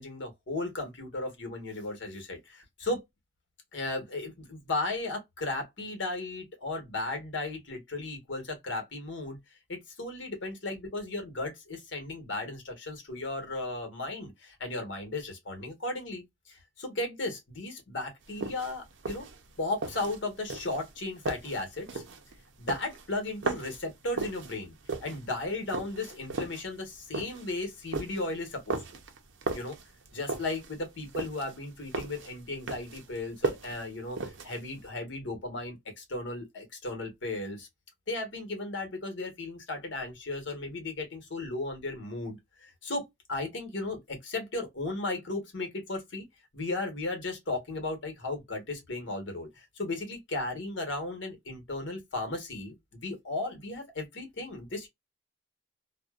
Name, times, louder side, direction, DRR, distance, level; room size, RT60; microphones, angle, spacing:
voice 1, 0.0-3.0 3.7-9.4 9.7-19.2 19.6-22.0 22.6-28.8 29.5-29.7 30.1-37.7 38.1-46.3 46.5-52.7 53.0-54.9, left 2 dB, 75° left, 1.2 m, -35 dB
sound 1, 18.2-34.9, right 3 dB, 80° right, 0.6 m, -37 dB
2.5 x 2.2 x 2.2 m
head